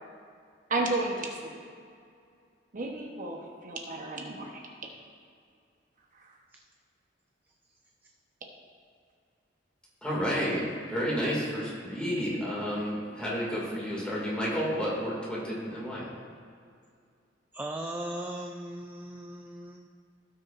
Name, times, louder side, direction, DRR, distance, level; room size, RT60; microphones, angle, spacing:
voice 1, 0.7-1.6 2.7-4.6, right 2 dB, 45° right, 0 dB, 1.0 m, -32 dB
voice 2, 10.0-10.6 10.9-16.1, equal, 5° left, -6 dB, 2.3 m, -31 dB
voice 3, 17.5-19.9, right 1 dB, 10° right, 2 dB, 0.4 m, -38 dB
16.5 x 6.3 x 2.6 m, 2.3 s
head